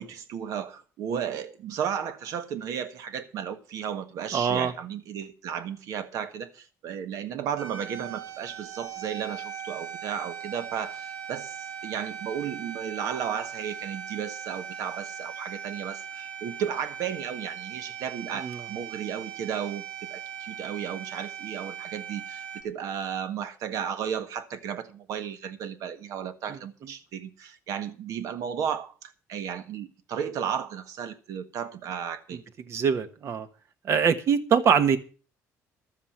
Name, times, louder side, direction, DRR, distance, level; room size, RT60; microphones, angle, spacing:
voice 1, 0.0-32.4, right 8 dB, 70° right, 1.5 m, -34 dB
voice 2, 4.3-4.7 18.4-18.6 26.5-26.6 32.7-33.5 33.8-35.0, right 7 dB, 50° right, 1.3 m, -23 dB
sound 1, 7.6-22.6, right 8 dB, 90° right, 2.2 m, -39 dB
13.0 x 7.4 x 7.3 m
cardioid pair, 120°, 6 cm